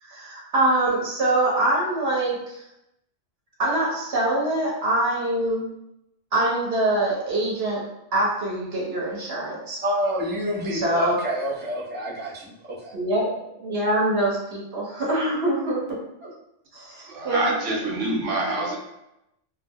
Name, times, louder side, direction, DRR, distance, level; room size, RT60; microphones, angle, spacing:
voice 1, 0.0-2.6 3.6-5.7 6.3-7.8 8.1-9.8 10.6-11.2 12.9-16.3 16.7-17.8 18.4-18.5, right 1 dB, 60° right, -4 dB, 1.1 m, -24 dB
voice 2, 9.8-13.0, equal, 15° right, -6 dB, 0.4 m, -28 dB
voice 3, 17.1-18.8, right 2 dB, 85° right, -1 dB, 1.1 m, -26 dB
2.5 x 2.0 x 3.5 m, 0.86 s
omnidirectional pair, 1.2 m